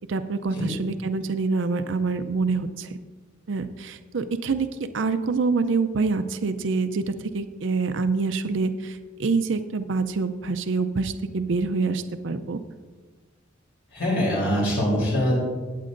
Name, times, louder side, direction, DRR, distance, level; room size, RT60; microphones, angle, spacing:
voice 1, 0.1-2.9 3.5-4.7 4.9-12.6, right 4 dB, 75° right, 10 dB, 0.5 m, -26 dB
voice 2, 13.9-15.4, equal, 75° left, -5 dB, 3.5 m, -23 dB
17.5 x 8.4 x 2.6 m, 1.4 s
head